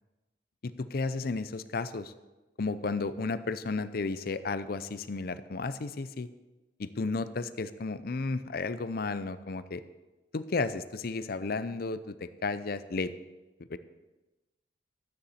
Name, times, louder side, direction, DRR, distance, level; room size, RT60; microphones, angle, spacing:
voice 1, 0.6-2.1 2.6-6.3 6.8-9.8 10.3-13.1 13.7-13.8, left 3 dB, 55° left, 13 dB, 0.5 m, -33 dB
12.5 x 9.8 x 4.2 m, 1.1 s
head